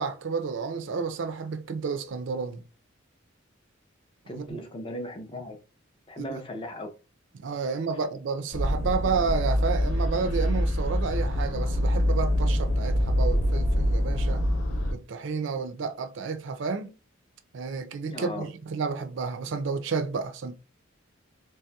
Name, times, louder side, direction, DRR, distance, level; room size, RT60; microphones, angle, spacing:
voice 1, 0.0-2.6 4.3-4.6 6.2-6.4 7.3-14.4 14.9-16.9 17.5-20.5, right 5 dB, 65° right, 0.4 m, -31 dB
voice 2, 4.3-5.6 6.1-6.9 18.1-18.5, left 1 dB, 25° left, 0.4 m, -37 dB
sound 1, 8.5-14.9, equal, 90° left, 0.6 m, -25 dB
3.2 x 2.8 x 2.2 m
head